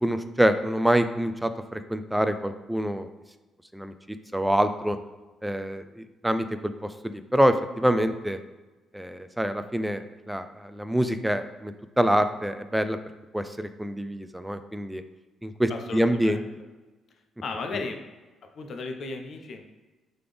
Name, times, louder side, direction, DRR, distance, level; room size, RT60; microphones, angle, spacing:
voice 1, 0.0-3.1 3.7-3.9 4.3-5.0 5.4-6.5 6.8-8.4 8.9-13.0 13.3-15.0 15.4-16.4, equal, 5° right, 10 dB, 0.3 m, -26 dB
voice 2, 15.7-16.5 17.4-18.0 18.5-19.7, left 3 dB, 55° left, 5 dB, 0.6 m, -35 dB
3.8 x 3.4 x 3.4 m, 1.2 s
cardioid pair, 90°, 0 cm